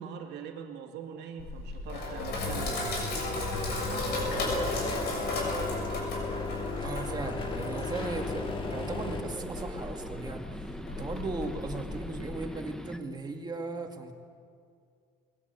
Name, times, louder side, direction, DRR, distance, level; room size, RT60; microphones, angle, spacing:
voice 1, 0.0-5.2, right 7 dB, 80° right, 4 dB, 2.2 m, -44 dB
Sink (filling or washing), 1.4-12.4, left 2 dB, 75° left, 6.5 m, -35 dB
sound 1, 4.1-9.2, left 3 dB, 30° left, 2.2 m, -36 dB
voice 2, 6.8-14.1, right 3 dB, 25° right, 3 dB, 2.1 m, -37 dB
sound 2, 8.0-13.0, equal, 5° left, 1.1 m, -42 dB
20.5 x 16.5 x 8.2 m, 2.3 s
cardioid pair, 110°, 17 cm